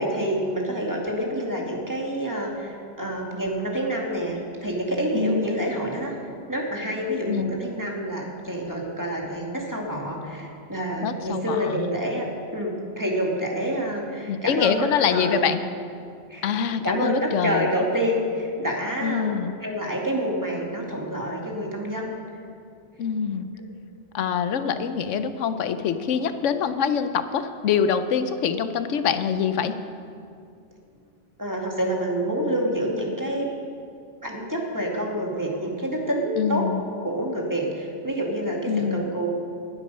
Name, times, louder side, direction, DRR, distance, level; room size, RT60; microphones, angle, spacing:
voice 1, 0.0-6.1 6.5-12.2 12.5-15.5 16.3-16.4 16.8-19.3 19.6-22.1 31.4-33.5 34.2-36.7 37.0-39.3, right 1 dB, 15° right, -1 dB, 2.0 m, -27 dB
voice 2, 5.1-5.5 7.3-7.6 11.0-11.9 14.3-15.6 16.4-17.7 19.0-19.5 23.0-23.5 24.1-29.8 36.4-36.8 38.7-39.0, left 7 dB, 85° left, 10 dB, 1.0 m, -25 dB
20.0 x 8.2 x 5.5 m, 2.4 s
omnidirectional pair, 1.2 m